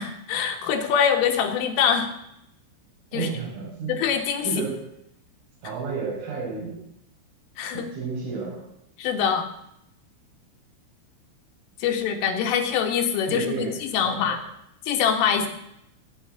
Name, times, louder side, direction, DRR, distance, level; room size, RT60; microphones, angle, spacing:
voice 1, 0.0-2.1 3.1-3.3 3.9-4.5 7.6-7.9 9.0-9.4 11.8-14.4 14.9-15.5, left 7 dB, 80° left, 4 dB, 4.3 m, -24 dB
voice 2, 3.1-3.9 4.4-4.8 5.6-6.7 7.7-8.7 13.3-13.8 14.0-14.3, right 5 dB, 80° right, -1 dB, 7.6 m, -31 dB
19.0 x 6.4 x 9.9 m, 0.78 s
omnidirectional pair, 5.7 m